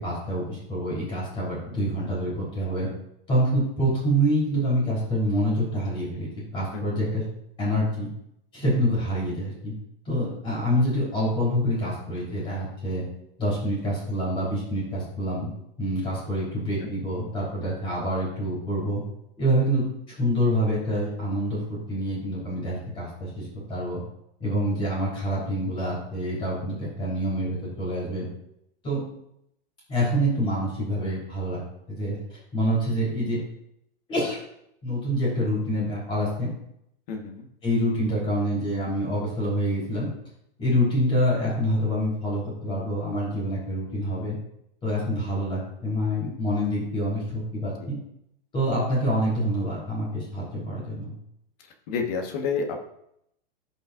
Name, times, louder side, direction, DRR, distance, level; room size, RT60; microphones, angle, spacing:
voice 1, 0.0-2.9 3.3-7.2 7.6-8.1 8.5-9.7 10.1-13.0 13.4-15.5 15.8-19.0 19.4-19.8 20.2-24.0 24.4-28.3 28.8-29.0 29.9-31.6 31.9-33.4 34.1-34.4 34.8-36.5 37.6-40.1 40.6-44.4 44.8-48.0 48.5-51.1, equal, 15° left, -6 dB, 3.6 m, -26 dB
voice 2, 37.1-37.5 47.8-47.9 51.9-52.9, left 5 dB, 40° left, 2 dB, 1.4 m, -30 dB
16.5 x 5.6 x 2.5 m, 0.77 s
supercardioid pair, 160°, 30 cm